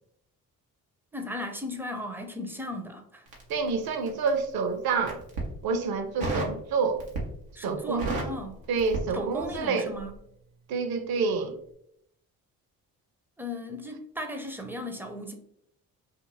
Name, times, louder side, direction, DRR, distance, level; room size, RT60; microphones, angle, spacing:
voice 1, 1.1-3.2 7.6-8.6 9.1-10.1 13.4-15.3, left 1 dB, 5° right, 4 dB, 0.4 m, -36 dB
Crackle, 3.3-4.4 4.9-5.5 6.2-6.6 7.0-7.5 7.7-9.7 9.9-10.2, right 2 dB, 90° right, 0.7 m, -33 dB
voice 2, 3.5-5.2 5.6-7.0 7.6-8.2 8.7-9.9 10.7-11.6, right 4 dB, 50° right, 7 dB, 0.6 m, -28 dB
2.6 x 2.5 x 3.0 m, 0.73 s
hypercardioid pair, 45°, 48 cm